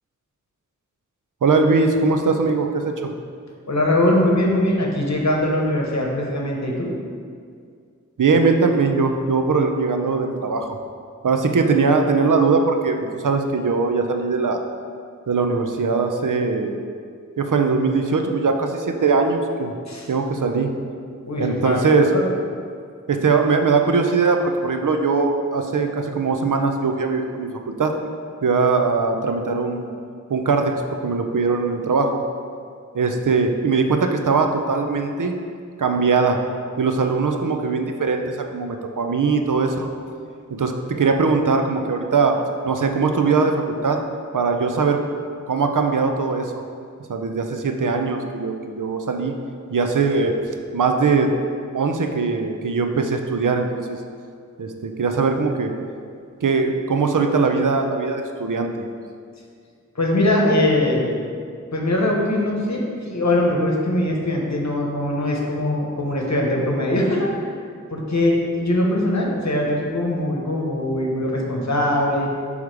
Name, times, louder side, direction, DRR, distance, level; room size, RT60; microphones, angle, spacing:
voice 1, 1.4-3.1 8.2-10.8 11.2-14.7 15.3-16.8 17.4-19.7 20.1-20.7 21.4-22.1 23.1-27.9 28.4-29.9 30.3-32.2 32.9-35.3 35.8-36.4 36.8-39.9 40.5-42.4 42.6-44.0 44.3-45.0 45.5-46.6 47.1-49.3 49.7-50.3 50.7-51.3 51.7-54.0 54.6-55.7 56.4-58.9, right 4 dB, 90° right, 4 dB, 0.5 m, -21 dB
voice 2, 3.7-6.9 19.9-20.1 21.3-21.8 22.1-22.3 59.9-61.1 61.7-67.5 67.9-72.3, left 1 dB, 65° left, -1 dB, 1.0 m, -21 dB
6.3 x 3.6 x 4.7 m, 2.2 s
wide cardioid pair, 50°, 30 cm